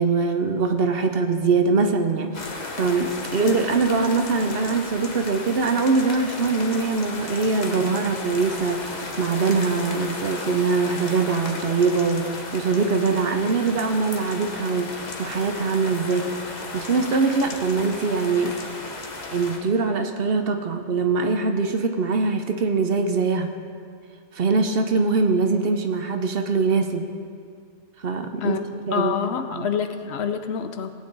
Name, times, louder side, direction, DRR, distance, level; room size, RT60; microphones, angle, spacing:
voice 1, 0.0-16.3 16.7-18.6 19.3-23.5 24.3-27.1 28.0-28.6 28.9-29.1 29.5-29.7, right 4 dB, 60° right, 6 dB, 0.9 m, -23 dB
sound 1, 2.3-19.6, left 2 dB, 40° left, 1.1 m, -34 dB
voice 2, 28.9-30.9, left 7 dB, 65° left, 9 dB, 0.9 m, -27 dB
17.0 x 9.1 x 3.9 m, 2.1 s
omnidirectional pair, 1.2 m